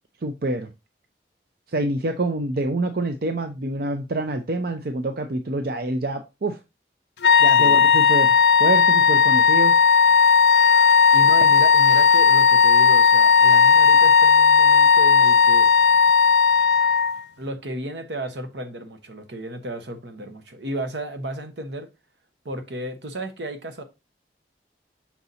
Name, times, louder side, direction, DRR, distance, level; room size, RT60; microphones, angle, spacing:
voice 1, 0.2-0.7 1.7-6.6 7.4-8.3 8.6-9.7, right 2 dB, 55° right, 0.6 m, -26 dB
sound 1, 7.2-17.2, left 6 dB, 70° left, 0.5 m, -15 dB
voice 2, 11.1-15.7 17.4-21.9 22.4-23.8, right 1 dB, 80° right, 1.1 m, -33 dB
5.9 x 4.1 x 4.0 m
head